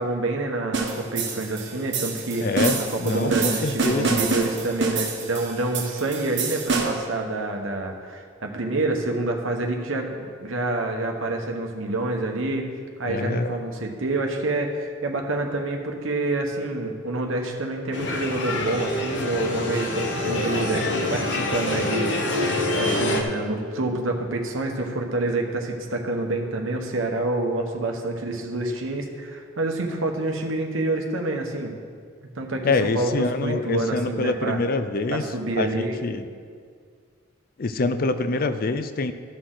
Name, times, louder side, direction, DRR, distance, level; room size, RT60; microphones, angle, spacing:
voice 1, 0.0-2.5 2.9-12.7 13.0-22.5 22.8-31.7 32.3-34.6 35.1-36.0, right 2 dB, 85° right, 2 dB, 1.1 m, -27 dB
sound 1, 0.7-7.1, right 4 dB, 65° right, 1.3 m, -27 dB
voice 2, 2.4-4.2 13.1-13.6 32.6-35.3 35.5-36.2 37.6-39.1, left 3 dB, 45° left, 10 dB, 0.5 m, -25 dB
sound 2, 17.9-23.2, left 1 dB, 65° left, 1.0 m, -26 dB
13.5 x 6.4 x 3.9 m, 2.1 s
head